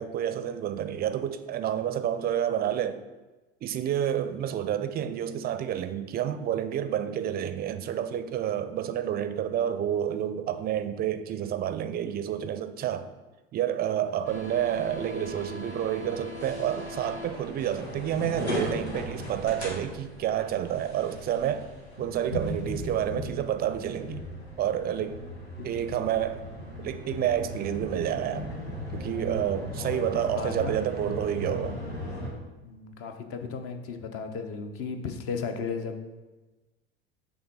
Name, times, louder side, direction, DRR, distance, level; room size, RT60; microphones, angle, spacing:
voice 1, 0.0-3.0 3.6-13.1 13.5-21.7 22.0-24.2 24.6-25.2 25.6-26.5 26.8-28.5 28.9-31.8, right 10 dB, 30° right, 11 dB, 0.5 m, -29 dB
sound 1, 14.2-32.3, left 1 dB, 90° left, 1.5 m, -37 dB
voice 2, 29.8-30.7 32.6-36.1, left 5 dB, 45° left, 6 dB, 0.9 m, -35 dB
5.8 x 3.6 x 5.4 m, 1.2 s
figure-of-eight pair, 75°, 31 cm